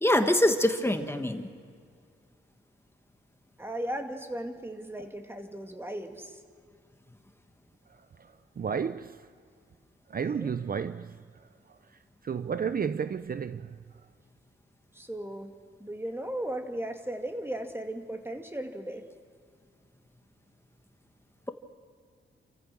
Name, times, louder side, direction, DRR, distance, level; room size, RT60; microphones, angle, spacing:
voice 1, 0.0-1.5, left 1 dB, 10° left, 1.4 m, -24 dB
voice 2, 3.6-6.4 10.2-10.6 14.9-15.5 15.8-19.0, right 1 dB, 10° right, 2.1 m, -36 dB
voice 3, 8.6-9.2 10.1-11.2 12.2-13.8, right 6 dB, 45° right, 0.5 m, -31 dB
28.5 x 15.0 x 6.1 m
cardioid pair, 75°, 21 cm